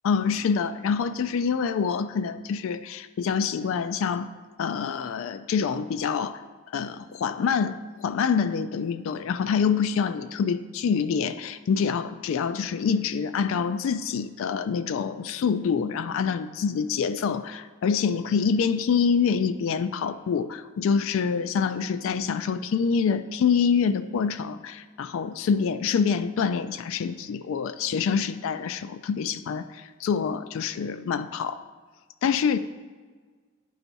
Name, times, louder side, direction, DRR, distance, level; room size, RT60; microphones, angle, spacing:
voice 1, 0.0-4.3 4.6-6.4 6.7-31.6 32.2-32.6, left 6 dB, 75° left, 12 dB, 0.3 m, -26 dB
10.0 x 4.5 x 4.0 m, 1.5 s
head